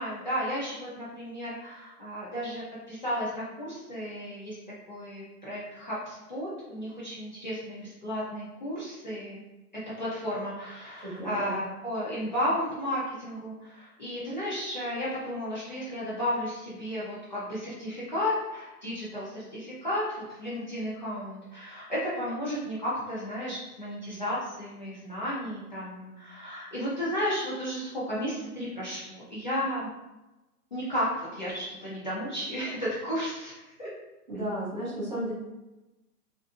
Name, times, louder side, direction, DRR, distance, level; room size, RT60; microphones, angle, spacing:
voice 1, 0.0-4.6 4.9-9.4 10.0-29.9 30.7-33.9, equal, 30° left, -9 dB, 0.4 m, -33 dB
voice 2, 11.0-11.6 34.3-35.3, right 1 dB, 30° right, -7 dB, 0.5 m, -33 dB
2.5 x 2.5 x 2.3 m, 1.0 s
hypercardioid pair, 160°, 46 cm